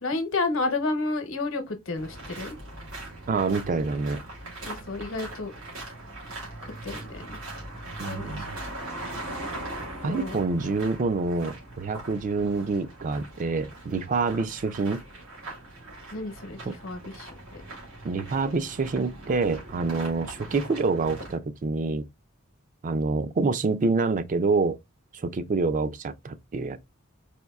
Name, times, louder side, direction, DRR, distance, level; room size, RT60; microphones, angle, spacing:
voice 1, 0.0-2.5 4.6-5.5 6.6-7.4 8.0-8.5 10.0-10.4 16.1-17.3, left 3 dB, 85° left, 0.9 m, -31 dB
sound 1, 2.0-21.4, right 2 dB, 85° right, 2.0 m, -40 dB
voice 2, 3.3-4.2 8.0-8.6 10.0-15.0 16.7-16.8 18.0-22.1 22.8-24.8 25.1-26.8, right 3 dB, 40° right, 0.4 m, -27 dB
4.3 x 2.6 x 2.3 m
head